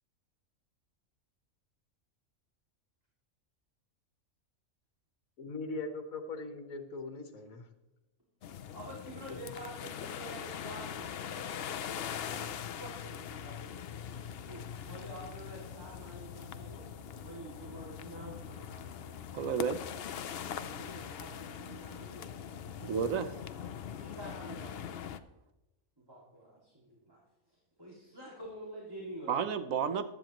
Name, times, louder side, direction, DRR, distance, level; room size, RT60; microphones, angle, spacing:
voice 1, 5.4-7.7 9.3-9.4, left 3 dB, 80° left, 6 dB, 1.6 m, -40 dB
sound 1, 8.4-25.2, left 8 dB, 60° left, 0.7 m, -42 dB
voice 2, 8.7-14.0 14.4-16.8 17.2-19.9 20.5-22.9 24.0-25.2 26.0-27.2 27.8-29.5, right 1 dB, 15° right, -5 dB, 2.4 m, -48 dB
voice 3, 19.3-19.9 22.8-23.4 29.3-30.0, right 7 dB, 75° right, 11 dB, 1.2 m, -31 dB
15.5 x 12.0 x 3.0 m, 1.0 s
omnidirectional pair, 1.4 m